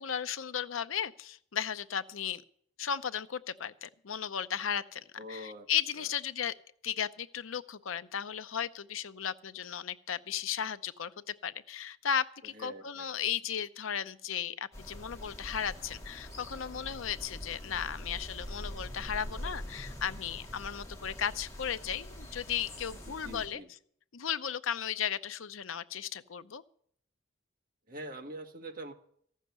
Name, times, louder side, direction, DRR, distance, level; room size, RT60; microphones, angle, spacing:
voice 1, 0.0-2.4 2.8-6.5 6.8-23.6 24.1-26.6, left 8 dB, 80° left, 12 dB, 0.7 m, -35 dB
voice 2, 5.2-5.7 6.0-6.1 12.5-13.1 23.0-23.7 27.9-28.9, right 1 dB, 45° right, 4 dB, 1.6 m, -44 dB
sound 1, 14.7-23.5, equal, 15° left, 3.1 m, -44 dB
14.5 x 6.6 x 9.3 m, 0.64 s
head